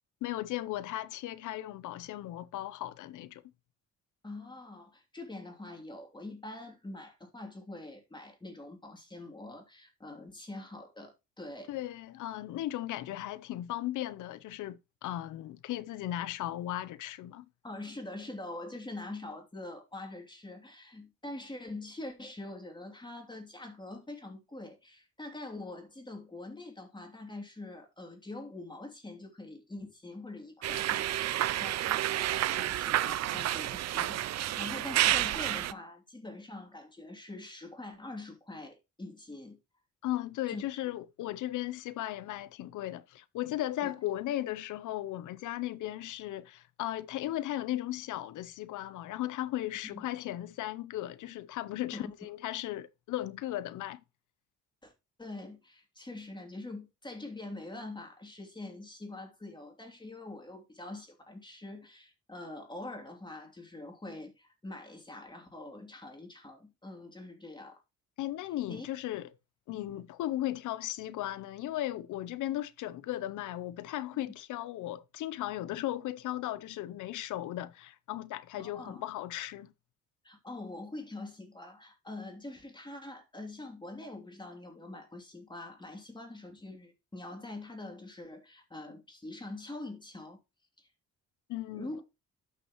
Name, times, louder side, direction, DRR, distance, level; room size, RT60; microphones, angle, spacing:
voice 1, 0.2-3.4 11.7-17.4 40.0-54.0 68.2-69.3 69.7-79.7 91.5-92.0, left 14 dB, 80° left, 0.7 m, -36 dB
voice 2, 4.2-11.7 17.6-39.6 40.5-40.8 43.8-43.9 49.9-50.0 51.9-52.1 54.8-54.9 55.2-67.8 68.7-68.9 78.6-79.1 80.2-90.4 90.8-90.9 91.7-92.0, left 2 dB, 15° left, 2.9 m, -44 dB
sound 1, 30.6-35.7, right 13 dB, 60° right, 0.5 m, -30 dB
12.0 x 6.2 x 3.0 m
cardioid pair, 90°, 30 cm